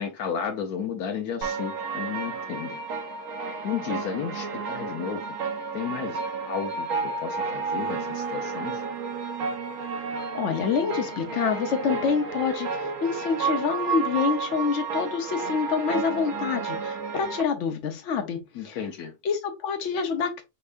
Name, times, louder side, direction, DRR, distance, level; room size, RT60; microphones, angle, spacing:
voice 1, 0.0-2.8 3.6-5.4 5.7-8.8 18.5-19.1, left 7 dB, 75° left, 1.2 m, -33 dB
sound 1, 1.4-17.4, right 4 dB, 60° right, 1.2 m, -31 dB
Singing, 7.4-12.3, right 13 dB, 85° right, 2.0 m, -40 dB
voice 2, 10.1-18.8 19.2-20.4, left 6 dB, 55° left, 1.1 m, -27 dB
5.4 x 3.4 x 2.5 m
omnidirectional pair, 1.7 m